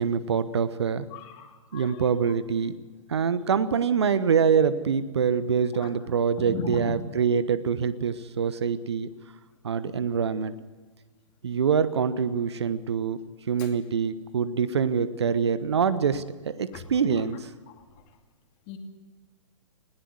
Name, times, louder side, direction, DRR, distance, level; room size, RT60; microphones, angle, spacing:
voice 1, 0.0-1.0 1.7-2.7 3.1-9.1 9.6-10.5 11.4-13.2 13.5-17.5, right 6 dB, 55° right, 14 dB, 1.1 m, -25 dB
voice 2, 1.1-2.0 5.8-5.9 6.4-7.0 13.6-13.7 16.7-16.8 17.7-17.8 18.7-18.8, left 5 dB, 30° left, 5 dB, 2.6 m, -37 dB
20.5 x 17.5 x 7.9 m, 1.4 s
figure-of-eight pair, 120°, 17 cm